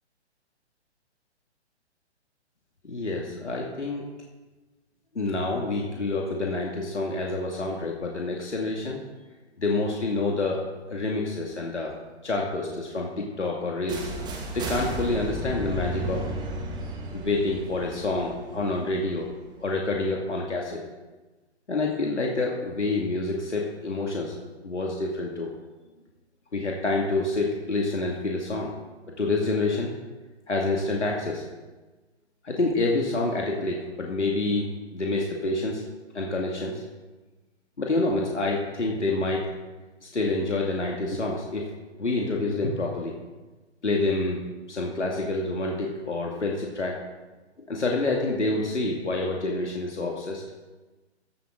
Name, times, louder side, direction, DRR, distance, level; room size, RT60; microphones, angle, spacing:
voice 1, 2.8-4.0 5.1-9.0 9.6-10.6 10.9-11.9 12.2-14.1 14.5-16.2 17.1-19.3 19.6-20.8 21.7-24.3 24.6-25.5 26.5-28.7 29.2-29.9 30.5-31.4 32.4-35.8 36.1-36.8 37.8-39.5 40.0-41.7 42.0-43.1 43.8-44.4 44.7-47.0 47.7-50.5, left 2 dB, 80° left, -1 dB, 2.4 m, -27 dB
sound 1, 13.9-19.7, right 1 dB, 10° right, 1.8 m, -34 dB
16.5 x 12.5 x 3.8 m, 1.2 s
figure-of-eight pair, 135°, 34 cm